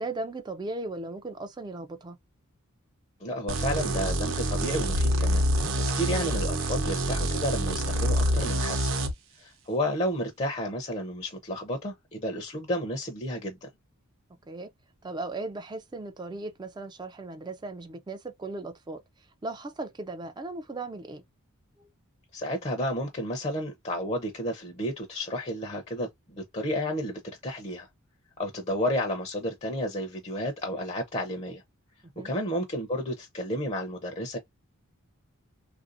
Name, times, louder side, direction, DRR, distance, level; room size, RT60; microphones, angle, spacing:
voice 1, 0.0-2.2 14.5-14.7 15.0-19.0 19.4-21.2 21.8-21.9 32.2-32.3, right 2 dB, 20° right, 0.3 m, -37 dB
voice 2, 3.2-5.5 5.9-9.0 9.4-13.7 22.3-27.9 28.4-31.6 32.2-34.4, equal, 30° left, 0.6 m, -31 dB
sound 1, 3.5-9.1, right 1 dB, 60° right, 0.7 m, -26 dB
3.4 x 2.5 x 2.5 m
head